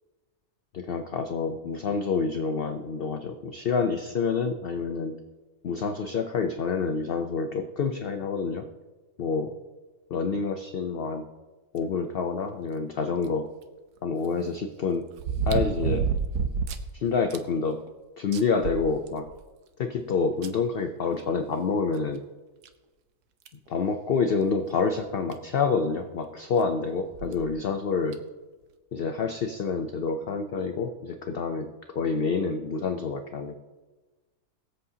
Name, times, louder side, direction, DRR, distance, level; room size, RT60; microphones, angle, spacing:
voice 1, 0.7-5.2 5.6-8.7 9.2-9.5 10.1-11.3 11.7-13.5 14.0-15.1 15.5-16.1 16.9-17.8 18.2-19.3 19.8-22.2 23.7-28.2 28.9-31.7 31.9-33.5, left 5 dB, 55° left, 7 dB, 0.6 m, -28 dB
sound 1, 13.2-13.3 15.2-16.9 17.3-17.4 17.9-18.0 18.3-19.4 20.4-20.5 22.0-22.1 22.6-22.7 23.5-23.7 25.0-25.1 25.3-25.4 27.1-27.4 28.1-28.2, right 6 dB, 85° right, 1.3 m, -28 dB
22.0 x 8.0 x 2.8 m, 1.2 s
omnidirectional pair, 1.6 m